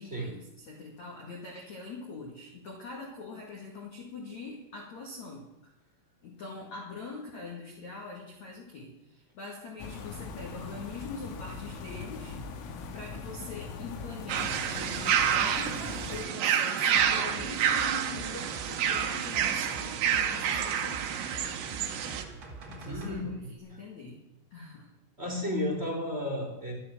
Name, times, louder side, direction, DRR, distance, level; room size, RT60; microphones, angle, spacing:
voice 1, 0.0-5.7 6.2-12.4 12.9-21.1 22.7-24.2 24.5-24.9, left 3 dB, 45° left, -1 dB, 2.6 m, -43 dB
sound 1, 9.8-16.3, left 4 dB, 75° left, 3.8 m, -41 dB
sound 2, 14.3-22.2, right 8 dB, 75° right, 2.1 m, -28 dB
sound 3, 16.9-23.2 23.6-23.7, right 3 dB, 45° right, 1.6 m, -45 dB
voice 2, 22.8-23.5 25.2-26.7, left 1 dB, 15° right, -3 dB, 4.0 m, -33 dB
13.0 x 10.5 x 7.3 m, 0.90 s
omnidirectional pair, 5.8 m